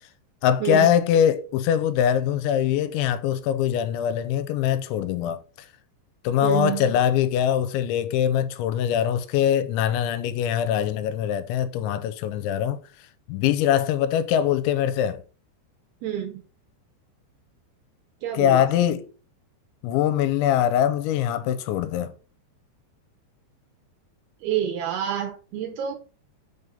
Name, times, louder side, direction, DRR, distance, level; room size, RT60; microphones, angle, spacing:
voice 1, 0.4-5.4 6.2-12.8 13.3-15.2 18.3-19.0 19.8-22.1, left 10 dB, 85° left, 3.0 m, -22 dB
voice 2, 6.4-7.0 16.0-16.4 18.2-18.7 24.4-26.0, right 9 dB, 75° right, 2.6 m, -28 dB
6.5 x 5.6 x 5.0 m
omnidirectional pair, 5.3 m